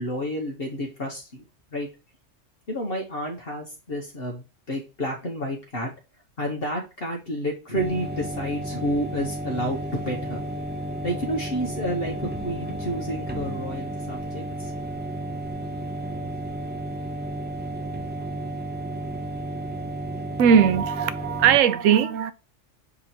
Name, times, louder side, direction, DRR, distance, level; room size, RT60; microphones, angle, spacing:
voice 1, 0.0-1.4 1.7-1.9 2.7-5.9 6.4-10.4 11.0-14.7, equal, 50° left, 1.3 m, -30 dB
sound 1, 7.7-21.6, right 1 dB, 10° right, 0.5 m, -32 dB
voice 2, 20.4-22.3, right 8 dB, 85° right, 1.0 m, -19 dB
7.3 x 3.0 x 4.3 m
omnidirectional pair, 1.3 m